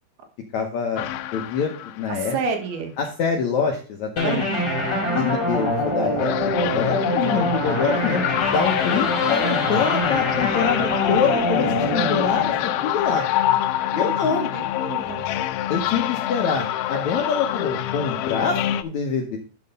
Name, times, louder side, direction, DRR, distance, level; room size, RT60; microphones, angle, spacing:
voice 1, 0.5-2.4 3.0-4.4 5.1-13.2 13.9-14.5 15.7-19.4, left 6 dB, 70° left, 2 dB, 1.8 m, -25 dB
sound 1, 1.0-2.4 6.2-18.8, left 12 dB, 90° left, 1.9 m, -26 dB
voice 2, 2.1-2.9 4.2-5.3 13.9-15.3, right 5 dB, 75° right, 4 dB, 3.3 m, -30 dB
sound 2, 4.2-13.5, left 1 dB, 20° left, 2.7 m, -25 dB
10.5 x 4.6 x 5.4 m, 0.37 s
omnidirectional pair, 4.5 m